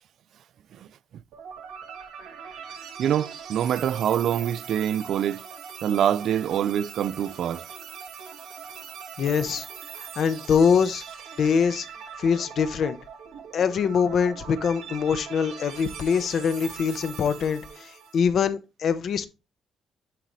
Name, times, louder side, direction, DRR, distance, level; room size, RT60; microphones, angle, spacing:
sound 1, 1.3-18.2, right 7 dB, 85° right, 1.4 m, -41 dB
voice 1, 3.0-5.4 5.8-7.6, right 10 dB, 70° right, 0.3 m, -25 dB
voice 2, 9.2-9.6 10.0-11.0 11.4-11.9 12.2-13.0 13.5-19.3, left 6 dB, 60° left, 0.8 m, -24 dB
10.0 x 4.0 x 3.0 m
cardioid pair, 90°, 0 cm